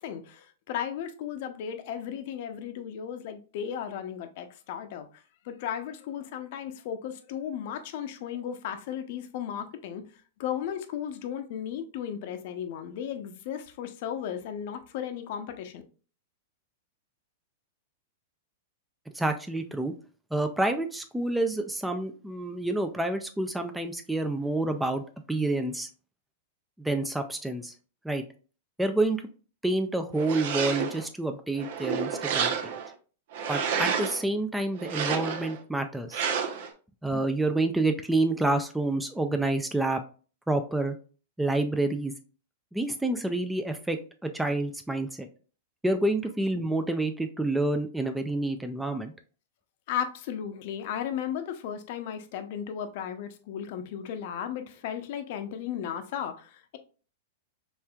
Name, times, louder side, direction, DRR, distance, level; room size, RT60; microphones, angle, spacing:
voice 1, 0.0-5.1 5.4-10.0 10.4-15.8 49.9-56.8, left 9 dB, 60° left, 0.6 m, -35 dB
voice 2, 19.1-19.9 20.3-25.0 25.3-25.9 26.8-27.7 28.0-28.2 28.8-29.2 29.6-32.7 33.5-36.2 37.0-40.0 40.5-41.0 41.4-42.1 42.7-45.3 45.8-49.1, right 2 dB, 5° right, 0.4 m, -28 dB
sound 1, 30.1-31.1 31.6-32.9 33.3-34.2 34.8-35.6 36.1-36.7, right 7 dB, 65° right, 0.7 m, -30 dB
4.3 x 3.2 x 2.3 m
hypercardioid pair, 115°, 0 cm